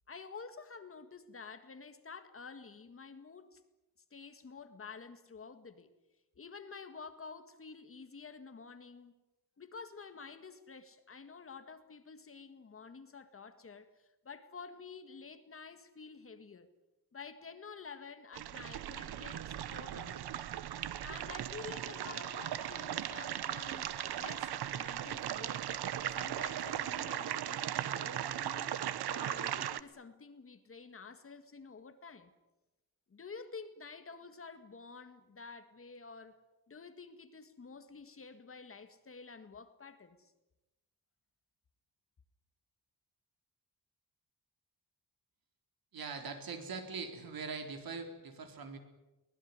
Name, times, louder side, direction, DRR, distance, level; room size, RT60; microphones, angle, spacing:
voice 1, 0.1-3.6 4.1-5.9 6.4-9.1 9.6-16.7 17.1-20.3 21.0-25.7 26.1-28.8 29.1-32.3 33.1-36.4 36.7-40.3, left 5 dB, 35° left, 1.8 m, -50 dB
sound 1, 18.3-29.8, right 11 dB, 80° right, 1.1 m, -38 dB
voice 2, 45.9-48.8, right 4 dB, 65° right, 4.1 m, -42 dB
23.5 x 20.0 x 9.6 m
wide cardioid pair, 160°, 38 cm